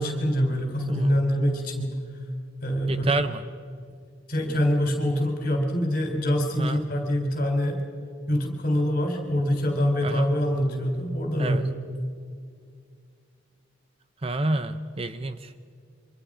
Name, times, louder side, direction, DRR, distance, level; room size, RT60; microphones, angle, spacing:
voice 1, 0.0-2.0 2.6-3.1 4.3-7.8 8.3-11.6, equal, 45° left, 3 dB, 3.8 m, -25 dB
voice 2, 2.9-3.4 6.6-6.9 10.0-10.3 11.4-11.6 14.2-15.6, right 2 dB, 30° right, 11 dB, 0.6 m, -28 dB
27.0 x 24.5 x 5.0 m, 2.1 s
head